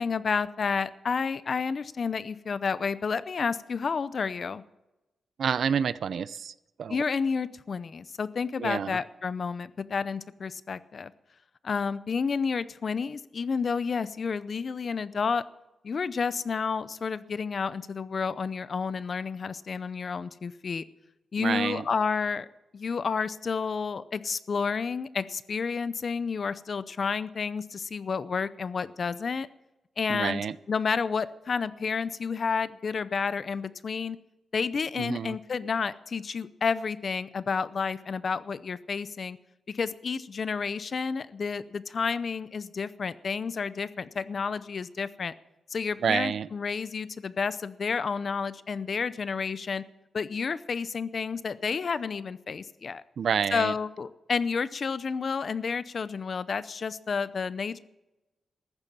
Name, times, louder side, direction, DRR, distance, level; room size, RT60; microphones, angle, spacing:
voice 1, 0.0-4.6 6.9-11.1 11.6-15.4 15.8-20.8 21.3-22.5 22.7-29.5 30.0-30.4 30.7-34.2 34.5-39.4 39.7-45.3 45.7-49.8 50.1-53.0 53.5-57.8, left 5 dB, 40° left, 16 dB, 0.6 m, -30 dB
voice 2, 5.4-6.5 6.8-7.0 8.6-9.0 21.4-21.9 30.1-30.6 35.0-35.4 46.0-46.5 53.2-53.7, right 7 dB, 55° right, 18 dB, 0.5 m, -28 dB
14.5 x 10.5 x 7.5 m, 0.98 s
wide cardioid pair, 170°, 0 cm